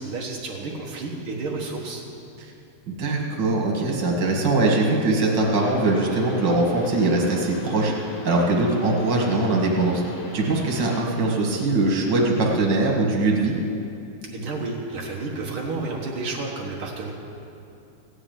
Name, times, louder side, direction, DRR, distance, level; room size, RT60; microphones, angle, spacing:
voice 1, 0.0-2.0 14.3-17.1, right 3 dB, 85° right, -2 dB, 1.1 m, -31 dB
voice 2, 2.9-7.9 8.2-10.0 10.3-13.5, right 2 dB, 45° right, -1 dB, 1.5 m, -21 dB
sound 1, 5.4-11.0, left 4 dB, 75° left, 3.8 m, -41 dB
16.0 x 8.1 x 9.3 m, 2.7 s
omnidirectional pair, 4.6 m